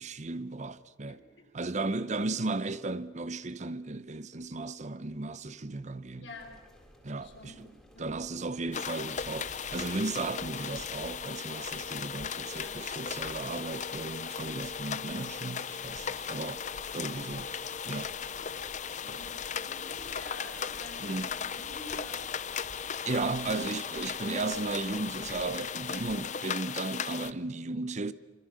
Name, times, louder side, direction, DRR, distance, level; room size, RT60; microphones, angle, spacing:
voice 1, 0.0-1.2 1.5-6.3 7.0-7.7 8.0-16.6 16.9-17.5 17.9-18.2 19.1-19.2 21.0-21.3 23.1-28.1, right 3 dB, 40° right, 0.8 m, -35 dB
voice 2, 1.1-1.5 6.2-6.6 7.2-7.7 7.9-8.2 12.5-12.9 19.0-22.3, left 1 dB, 80° left, 5.5 m, -49 dB
sound 1, 6.3-26.2, equal, ahead, 4.0 m, -55 dB
sound 2, 8.7-27.3, left 7 dB, 40° left, 0.6 m, -37 dB
26.0 x 25.5 x 6.4 m
head